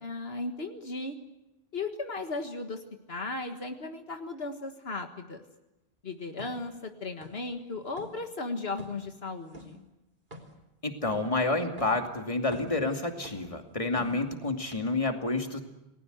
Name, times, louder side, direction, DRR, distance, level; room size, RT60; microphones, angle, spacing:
voice 1, 0.0-1.2 1.7-2.8 3.1-5.4 6.0-9.8, left 3 dB, 75° left, 6 dB, 1.9 m, -36 dB
sound 1, 6.4-6.6 7.2-7.6 7.9-8.2 8.8-9.0 9.5-9.8 10.3-10.6 11.0-11.3 11.8-12.0 12.4-12.9 13.2-13.6 14.0-14.3 14.7-14.8, right 1 dB, 50° right, 3.5 m, -46 dB
voice 2, 10.8-15.6, left 2 dB, 30° left, 4 dB, 2.6 m, -29 dB
28.5 x 20.0 x 8.1 m, 0.96 s
omnidirectional pair, 1.1 m